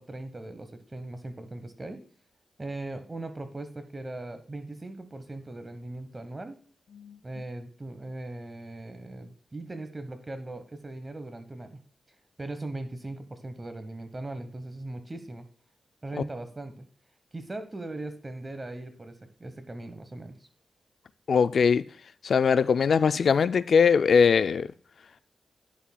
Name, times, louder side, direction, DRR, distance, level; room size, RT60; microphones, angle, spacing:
voice 1, 0.0-2.0 2.6-6.6 7.2-11.8 12.4-15.5 16.0-16.9 17.3-20.4, right 2 dB, 30° right, 1.0 m, -39 dB
voice 2, 21.3-21.8 22.2-24.7, left 6 dB, 70° left, 0.3 m, -21 dB
10.5 x 7.1 x 2.3 m
cardioid pair, 55°, 0 cm